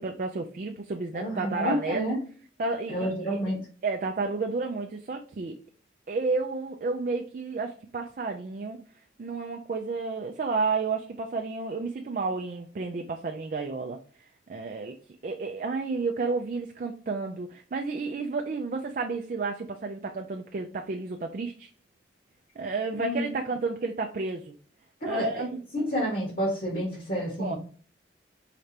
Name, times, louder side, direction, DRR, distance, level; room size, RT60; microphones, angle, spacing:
voice 1, 0.0-2.0 2.6-3.4 3.8-5.6 6.1-8.8 9.2-14.0 14.5-15.0 15.2-21.7 22.6-24.5 25.0-25.8 27.4-27.6, right 3 dB, 45° right, 0.4 m, -31 dB
voice 2, 1.1-2.2 2.9-3.6 22.9-23.3 25.0-25.4 25.7-27.6, equal, 50° left, 1.4 m, -29 dB
4.8 x 3.3 x 2.8 m
head